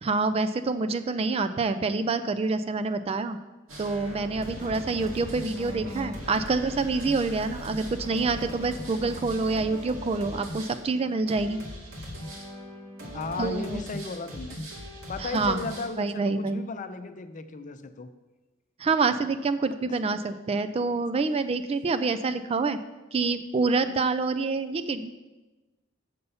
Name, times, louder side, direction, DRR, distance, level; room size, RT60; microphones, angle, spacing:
voice 1, 0.0-3.4 3.8-11.6 13.4-13.8 15.2-15.7 16.0-16.6 18.8-22.8 23.1-25.1, right 3 dB, 30° right, 10 dB, 0.3 m, -27 dB
sound 1, 3.7-15.9, equal, 90° right, 2.1 m, -39 dB
voice 2, 13.1-14.6 15.1-18.1 19.8-19.9, left 3 dB, 40° left, 9 dB, 0.5 m, -35 dB
7.0 x 6.7 x 5.5 m, 1.2 s
head